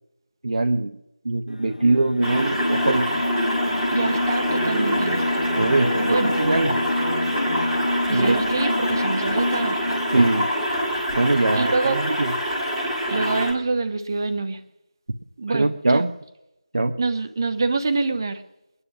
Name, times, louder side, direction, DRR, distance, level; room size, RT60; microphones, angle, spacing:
voice 1, 0.4-0.9 1.2-3.2 5.6-6.7 8.1-8.4 10.1-10.5 11.1-12.3 15.5-16.1 16.7-16.9, right 2 dB, 55° right, 1.0 m, -22 dB
sound 1, 1.5-10.7, left 1 dB, 70° left, 0.8 m, -27 dB
sound 2, 2.2-13.5, equal, 5° right, 1.6 m, -26 dB
voice 2, 3.9-5.5 6.1-6.3 8.1-9.8 11.5-12.0 13.1-14.6 15.4-16.0 17.0-18.4, right 3 dB, 30° right, 1.1 m, -26 dB
22.0 x 9.9 x 6.1 m
figure-of-eight pair, 170°, 4 cm